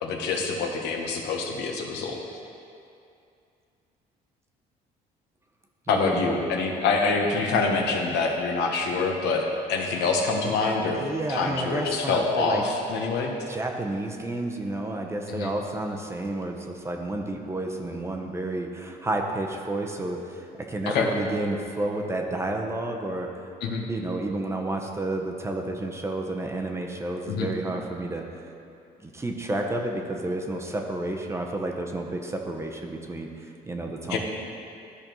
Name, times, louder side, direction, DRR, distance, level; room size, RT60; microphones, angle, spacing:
voice 1, 0.0-2.2 5.9-11.0 11.3-13.3 15.3-15.5 20.9-21.1 23.6-23.8 27.3-27.5 34.1-34.2, left 4 dB, 85° left, 1 dB, 1.0 m, -26 dB
voice 2, 5.9-6.3 11.0-12.6 13.5-23.3 23.9-28.2 29.0-34.2, right 2 dB, 15° right, 2 dB, 0.7 m, -31 dB
12.5 x 5.2 x 3.0 m, 2.6 s
cardioid pair, 110°, 17 cm